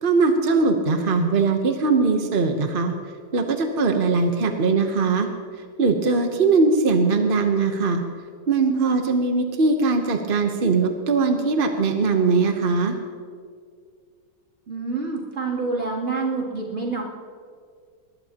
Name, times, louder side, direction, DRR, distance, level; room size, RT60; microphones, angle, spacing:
voice 1, 0.0-2.9 3.3-5.3 5.8-8.0 8.5-13.0, right 4 dB, 50° right, 5 dB, 0.6 m, -20 dB
voice 2, 14.7-17.0, right 4 dB, 30° right, -4 dB, 3.0 m, -27 dB
21.0 x 19.5 x 2.9 m, 2.1 s
omnidirectional pair, 2.3 m